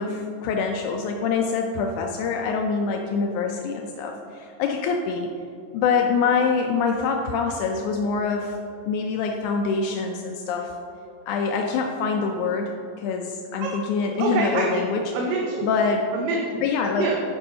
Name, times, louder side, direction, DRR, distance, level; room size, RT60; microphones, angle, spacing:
voice 1, 0.0-5.3 5.7-8.6 8.9-10.7 11.3-12.7 13.0-15.0 15.6-16.0 16.6-17.1, left 5 dB, 85° left, 2 dB, 1.7 m, -25 dB
voice 2, 14.2-14.7 15.1-15.7 16.1-16.7 17.0-17.2, right 3 dB, 75° right, 0 dB, 2.3 m, -25 dB
11.0 x 5.8 x 3.8 m, 2.6 s
omnidirectional pair, 4.1 m